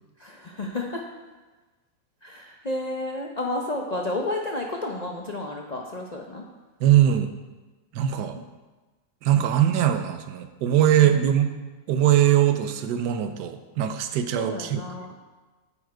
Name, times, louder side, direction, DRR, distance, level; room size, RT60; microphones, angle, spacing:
voice 1, 0.2-1.0 2.2-6.4 9.3-9.5 11.0-11.3 14.3-15.1, left 2 dB, 60° left, 0 dB, 0.4 m, -31 dB
voice 2, 6.8-7.3 7.9-8.4 9.2-11.5 11.9-14.8, right 11 dB, 75° right, 8 dB, 1.3 m, -21 dB
8.7 x 7.2 x 4.7 m, 1.2 s
omnidirectional pair, 1.9 m